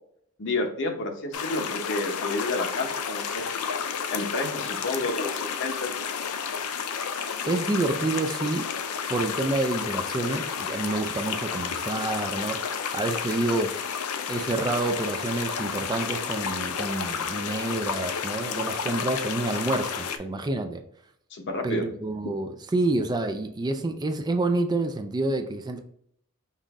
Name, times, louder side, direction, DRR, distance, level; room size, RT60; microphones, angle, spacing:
voice 1, 0.4-3.4 4.1-5.9 21.3-21.8, left 2 dB, 55° left, 5 dB, 0.8 m, -30 dB
sound 1, 1.3-20.2, left 6 dB, 75° left, 0.5 m, -31 dB
voice 2, 7.4-8.7 9.1-13.8 14.3-20.8 21.6-25.8, right 2 dB, 20° right, 6 dB, 0.4 m, -28 dB
5.6 x 2.5 x 3.5 m, 0.69 s
head